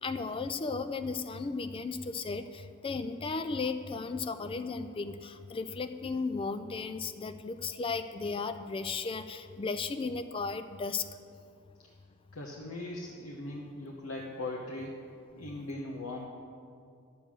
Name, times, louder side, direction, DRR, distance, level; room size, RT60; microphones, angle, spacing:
voice 1, 0.0-11.0 15.5-15.6, left 4 dB, 25° left, 10 dB, 0.3 m, -35 dB
voice 2, 12.3-15.0 15.4-16.3, left 2 dB, 80° left, -1 dB, 1.0 m, -39 dB
11.0 x 7.7 x 6.3 m, 2.5 s
head